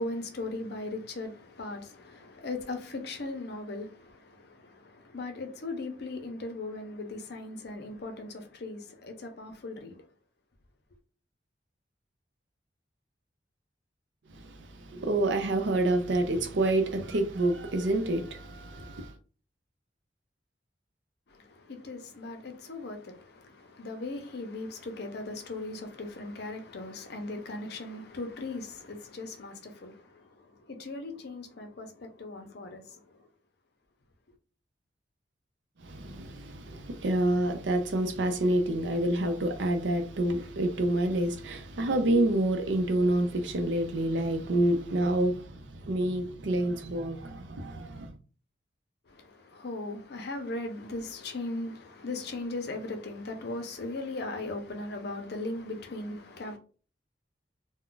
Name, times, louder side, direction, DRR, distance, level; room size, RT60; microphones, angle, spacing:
voice 1, 0.0-10.0 21.3-33.3 49.1-56.6, left 2 dB, 60° left, 0.6 m, -38 dB
voice 2, 14.3-19.2 35.8-48.2, right 1 dB, 80° right, 0.5 m, -28 dB
2.3 x 2.2 x 3.7 m
head